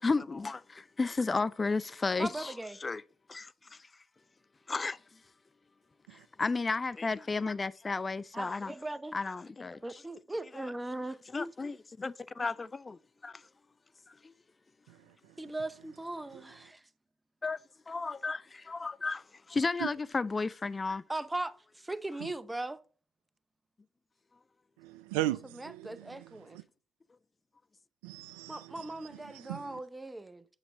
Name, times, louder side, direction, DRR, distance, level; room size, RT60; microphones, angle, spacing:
voice 1, 0.0-2.5 2.8-3.0 3.3-3.9 4.7-5.0 6.1-8.7 9.1-10.0 10.5-10.7 11.3-13.4 14.1-14.3 17.4-17.6 17.9-21.0, left 3 dB, 30° left, 0.3 m, -33 dB
voice 2, 2.2-2.8 8.3-9.1 9.8-11.2 15.4-16.8 21.1-22.8 25.5-26.6 28.5-30.4, right 2 dB, 15° right, 0.7 m, -39 dB
voice 3, 24.8-26.1 28.0-28.9 29.5-29.6, right 15 dB, 75° right, 0.4 m, -36 dB
8.1 x 6.9 x 3.8 m
figure-of-eight pair, 45°, 0 cm